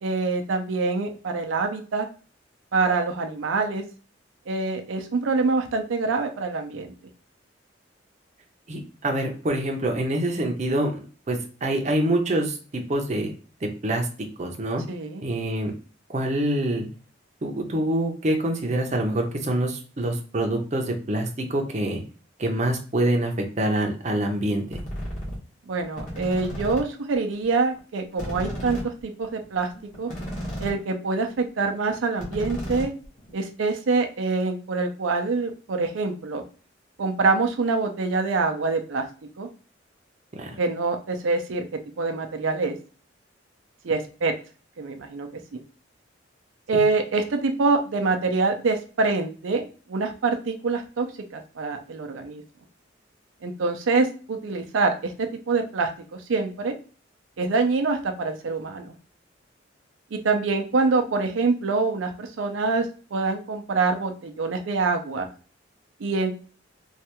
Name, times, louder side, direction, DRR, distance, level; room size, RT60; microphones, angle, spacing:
voice 1, 0.0-2.1 2.7-3.8 4.5-6.9 14.9-15.3 25.7-29.7 30.0-30.1 30.6-32.9 33.3-36.4 37.0-39.0 39.4-39.5 40.6-41.6 42.0-42.7 43.8-44.3 44.8-45.6 46.7-51.1 51.3-52.4 53.4-56.7 57.4-58.9 60.1-65.3 66.0-66.3, right 3 dB, 90° right, 5 dB, 0.5 m, -25 dB
voice 2, 8.7-11.0 11.3-12.6 12.9-13.3 13.6-14.1 14.4-14.8 15.2-15.7 16.1-16.9 17.4-22.0 22.4-24.6 40.4-40.6 46.7-46.8, right 1 dB, 40° right, 3 dB, 0.6 m, -25 dB
sound 1, 24.7-25.4 25.8-26.8 27.1-27.2 27.4-27.5 27.8-27.9 28.1-30.8 31.1-31.3 31.6-31.7 31.9-33.3, equal, 40° left, 1.3 m, -33 dB
3.2 x 2.3 x 2.9 m, 0.37 s
head